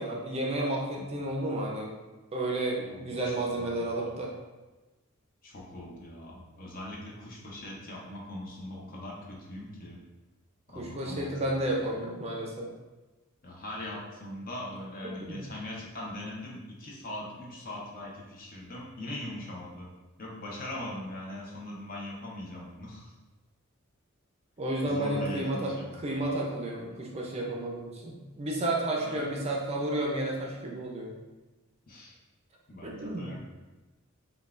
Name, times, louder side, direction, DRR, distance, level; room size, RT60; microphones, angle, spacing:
voice 1, 0.0-1.9 2.3-4.3 10.7-12.7 15.2-15.4 24.6-31.1 32.8-33.3, right 1 dB, 30° right, -2 dB, 0.5 m, -32 dB
voice 2, 2.9-4.2 5.4-10.0 10.7-11.7 13.4-19.9 20.2-23.1 24.8-26.1 29.0-29.3 31.9-32.1 32.7-33.4, left 1 dB, 40° left, -3 dB, 0.7 m, -41 dB
5.3 x 2.3 x 2.4 m, 1.2 s
head